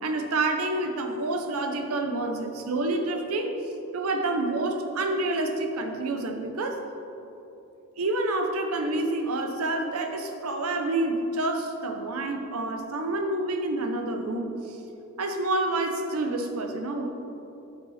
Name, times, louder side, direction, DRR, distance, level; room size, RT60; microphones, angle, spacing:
voice 1, 0.0-3.6 3.9-6.8 8.0-14.8 15.2-17.1, right 2 dB, 80° right, 5 dB, 0.8 m, -28 dB
8.0 x 6.8 x 4.2 m, 3.0 s
head